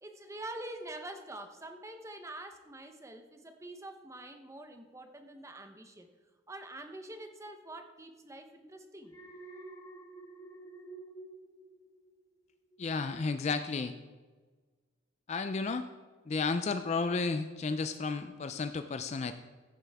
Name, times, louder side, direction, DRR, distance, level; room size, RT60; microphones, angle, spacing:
voice 1, 0.0-6.1 6.5-9.2, right 1 dB, 15° right, 6 dB, 0.7 m, -45 dB
Alarm, 9.0-12.3 12.7-13.1, right 2 dB, 15° left, 0.9 m, -49 dB
voice 2, 12.8-13.9 15.3-15.9 16.3-19.3, left 4 dB, 35° left, 10 dB, 0.3 m, -32 dB
15.0 x 7.5 x 3.5 m, 1.4 s
head